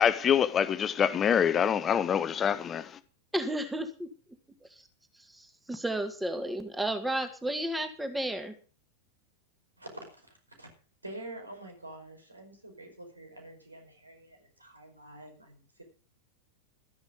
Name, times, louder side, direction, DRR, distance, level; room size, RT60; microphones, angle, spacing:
voice 1, 0.0-3.0, left 8 dB, 25° left, 0.9 m, -25 dB
voice 2, 3.3-4.1 4.7-4.8 5.3-8.5, right 1 dB, 5° right, 1.9 m, -32 dB
voice 3, 9.8-10.7 11.0-15.8, right 1 dB, 80° right, 5.1 m, -47 dB
13.5 x 10.5 x 5.2 m
figure-of-eight pair, 90°, 0 cm